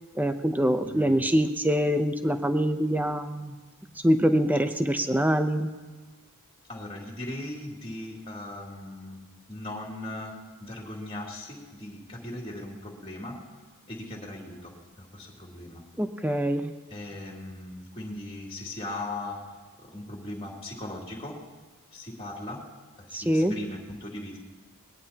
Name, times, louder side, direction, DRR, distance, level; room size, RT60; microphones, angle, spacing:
voice 1, 0.2-3.5 4.0-5.7 16.0-16.7 23.1-23.6, equal, 10° right, 8 dB, 0.7 m, -24 dB
voice 2, 0.8-1.2 6.7-9.2 9.5-13.4 13.9-15.8 16.9-19.4 19.8-21.4 21.9-22.6 23.0-24.4, left 1 dB, 25° left, -1 dB, 2.9 m, -39 dB
22.0 x 19.5 x 2.9 m, 1.3 s
head